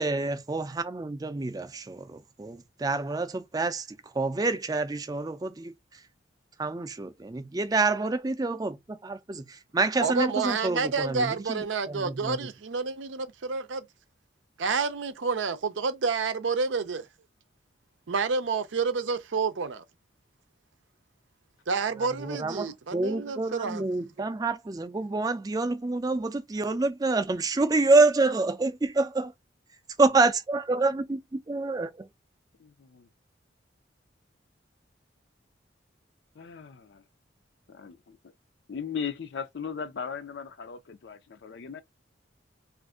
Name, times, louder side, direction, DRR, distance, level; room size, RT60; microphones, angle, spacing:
voice 1, 0.0-3.9 4.1-5.7 6.6-12.4 22.2-29.3 30.0-32.1, right 3 dB, 20° right, 0.4 m, -27 dB
voice 2, 10.0-13.9 14.6-17.1 18.1-19.8 21.7-23.8, right 4 dB, 85° right, 0.6 m, -29 dB
voice 3, 32.6-33.1 36.4-37.0 37.7-38.3 38.7-41.8, left 6 dB, 70° left, 0.4 m, -38 dB
2.5 x 2.5 x 3.5 m
head